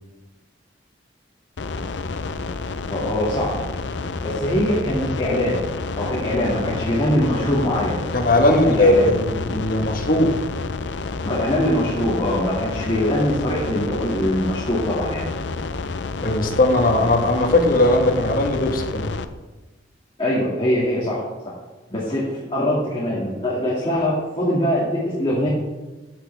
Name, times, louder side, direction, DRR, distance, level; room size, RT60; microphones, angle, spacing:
sound 1, 1.6-19.2, left 3 dB, 70° left, 0.6 m, -29 dB
voice 1, 2.9-3.6 4.2-5.7 5.9-8.0 8.4-9.1 11.2-15.3 20.2-21.3 21.9-25.5, equal, 30° left, -6 dB, 2.3 m, -22 dB
voice 2, 8.1-10.3 16.2-19.1, left 1 dB, 50° left, 4 dB, 1.4 m, -18 dB
14.5 x 8.5 x 3.4 m, 1.2 s
head